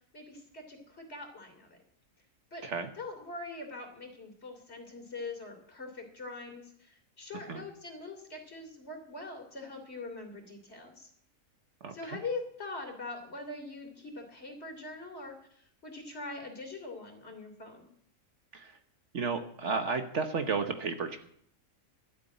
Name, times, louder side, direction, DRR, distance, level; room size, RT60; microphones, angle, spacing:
voice 1, 0.1-1.8 2.5-2.7 3.0-11.1 11.9-17.9, left 3 dB, 45° left, 3 dB, 3.4 m, -43 dB
voice 2, 11.8-12.2 18.5-18.7 19.1-21.2, right 4 dB, 55° right, 8 dB, 1.3 m, -33 dB
12.5 x 8.1 x 9.0 m, 0.64 s
omnidirectional pair, 1.5 m